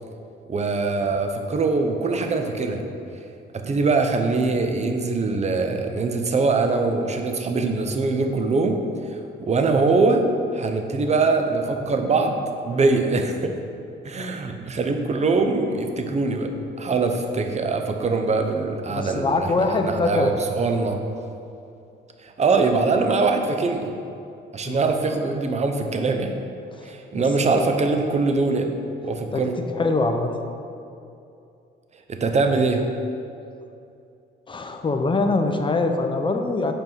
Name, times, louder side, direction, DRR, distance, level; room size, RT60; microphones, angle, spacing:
voice 1, 0.5-2.8 3.5-8.8 9.1-13.5 14.0-21.0 22.2-23.9 24.5-26.3 26.8-28.7 29.0-29.5 32.1-32.8, right 3 dB, 35° right, 5 dB, 0.7 m, -23 dB
voice 2, 18.9-20.3 24.6-24.9 26.7-27.7 29.3-29.4 29.8-30.3 34.5-36.7, left 3 dB, 25° left, 5 dB, 0.6 m, -24 dB
5.4 x 4.4 x 5.6 m, 2.6 s
cardioid pair, 90°, 20 cm